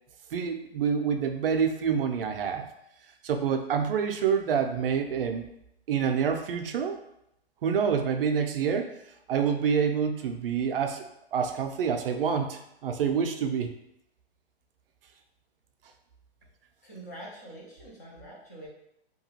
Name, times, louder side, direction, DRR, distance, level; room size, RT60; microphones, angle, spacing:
voice 1, 0.3-2.7 3.2-5.4 5.9-7.0 7.6-8.9 9.3-11.1 11.3-13.7, right 7 dB, 60° right, 5 dB, 0.4 m, -27 dB
voice 2, 16.8-18.7, right 1 dB, 15° left, -5 dB, 0.3 m, -45 dB
2.8 x 2.3 x 2.8 m, 0.80 s
hypercardioid pair, 155°, 32 cm